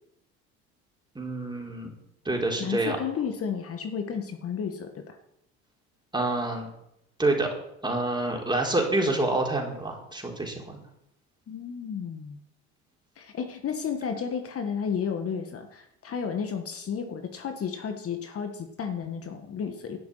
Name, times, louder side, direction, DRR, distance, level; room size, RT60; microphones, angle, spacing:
voice 1, 1.1-1.9 2.2-3.0 6.1-6.7 7.2-7.5 7.8-10.8, right 2 dB, 15° right, 0 dB, 4.4 m, -27 dB
voice 2, 2.6-5.2 11.5-12.4 13.2-20.0, left 7 dB, 45° left, 6 dB, 1.9 m, -32 dB
12.0 x 7.1 x 9.3 m, 0.79 s
supercardioid pair, 85°, 31 cm